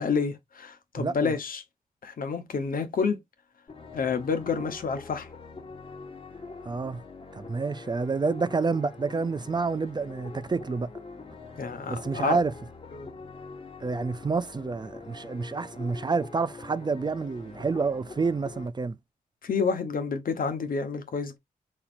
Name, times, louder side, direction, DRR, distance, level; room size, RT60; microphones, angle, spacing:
voice 1, 0.0-1.6 2.0-3.2 3.9-5.3 11.6-12.4 12.9-13.1 19.4-21.4, left 5 dB, 70° left, 1.1 m, -29 dB
voice 2, 0.9-1.3 6.7-7.0 7.3-10.9 11.9-12.5 13.8-19.0, right 4 dB, 30° right, 0.3 m, -28 dB
sound 1, 3.7-18.7, left 3 dB, 35° left, 1.1 m, -44 dB
4.4 x 4.0 x 2.5 m
cardioid pair, 80°, 15 cm